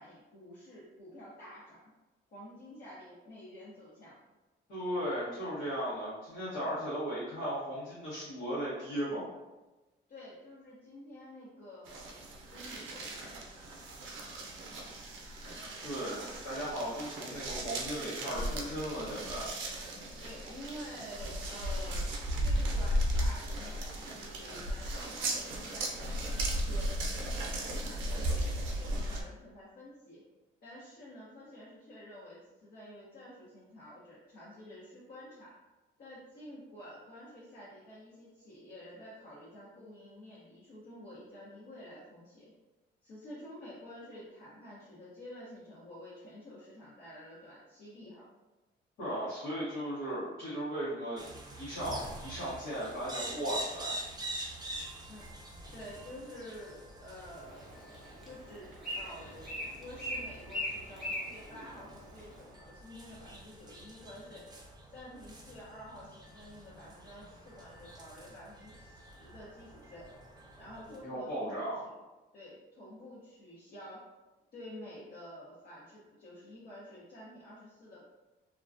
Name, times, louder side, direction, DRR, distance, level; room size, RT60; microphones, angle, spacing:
voice 1, 0.0-1.8 2.3-4.2 10.1-12.2 12.5-13.5 15.4-15.7 20.2-22.0 22.4-26.9 27.4-30.2 30.6-35.6 36.0-42.5 43.0-48.3 55.1-55.3 55.7-57.8 58.2-64.5 64.9-70.1 70.6-72.0 72.3-74.1 74.5-78.0, left 1 dB, 55° left, -9 dB, 0.7 m, -50 dB
voice 2, 4.7-9.3 15.8-19.5 49.0-51.3 51.5-54.0 71.0-71.8, equal, 80° left, -12 dB, 1.0 m, -36 dB
sound 1, 11.9-29.2, equal, 80° right, 0.5 m, -36 dB
sound 2, 51.2-71.0, right 1 dB, 20° right, 0.5 m, -46 dB
Bird, 57.3-62.4, equal, ahead, 0.9 m, -41 dB
2.3 x 2.2 x 2.5 m, 1.1 s
cardioid pair, 90°, 20 cm